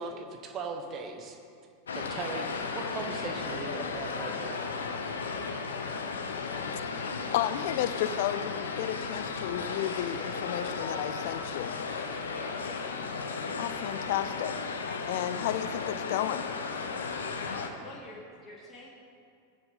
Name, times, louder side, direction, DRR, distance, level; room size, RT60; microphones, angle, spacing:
voice 1, 0.0-1.4 1.9-4.6, right 4 dB, 30° right, 4 dB, 1.4 m, -38 dB
sound 1, 1.9-17.7, left 4 dB, 70° left, 1.0 m, -35 dB
voice 2, 6.8-11.8 13.6-14.5 15.1-16.4, left 12 dB, 50° left, 14 dB, 0.5 m, -33 dB
voice 3, 12.3-13.0 17.4-18.9, left 2 dB, 20° left, -7 dB, 2.8 m, -46 dB
15.5 x 10.0 x 3.7 m, 2.4 s
figure-of-eight pair, 90°, 0 cm